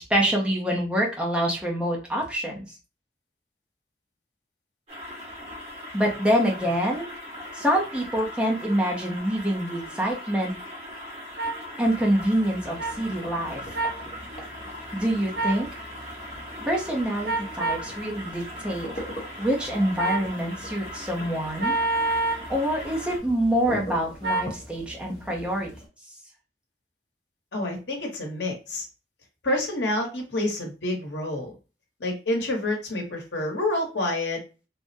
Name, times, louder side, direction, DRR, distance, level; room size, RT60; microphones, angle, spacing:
voice 1, 0.0-2.7 5.9-7.1 7.5-10.5 11.8-13.6 14.9-15.7 16.7-18.9 19.4-21.8 22.5-25.7, equal, 5° right, -2 dB, 0.6 m, -26 dB
sound 1, 4.9-23.2, left 1 dB, 35° right, 1.1 m, -40 dB
sound 2, 11.4-11.5 12.8-12.9 13.7-14.0 15.3-15.6 17.2-17.9 20.0-20.3 21.6-22.5 24.2-24.5, right 3 dB, 65° right, 0.7 m, -26 dB
sound 3, 11.8-25.9, equal, 40° left, 0.9 m, -42 dB
voice 2, 27.5-28.9 29.4-31.5 32.0-34.4, left 1 dB, 75° left, 1 dB, 1.0 m, -28 dB
3.5 x 2.0 x 2.5 m, 0.32 s
head